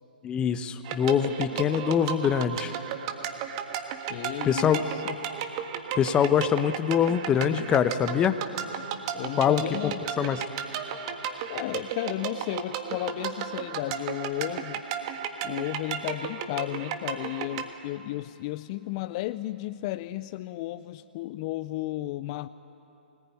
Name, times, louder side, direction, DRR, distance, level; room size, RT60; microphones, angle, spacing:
voice 1, 0.2-2.7 4.4-4.8 5.9-8.4 9.4-9.6 10.2-10.4, left 8 dB, 15° left, 11 dB, 0.9 m, -24 dB
sound 1, 0.8-17.7, right 8 dB, 40° right, 1.7 m, -34 dB
voice 2, 4.0-5.2 9.1-10.1 11.5-14.8 15.4-22.5, left 16 dB, 35° left, 13 dB, 0.5 m, -33 dB
23.5 x 19.5 x 9.5 m, 2.8 s
hypercardioid pair, 130°, 5 cm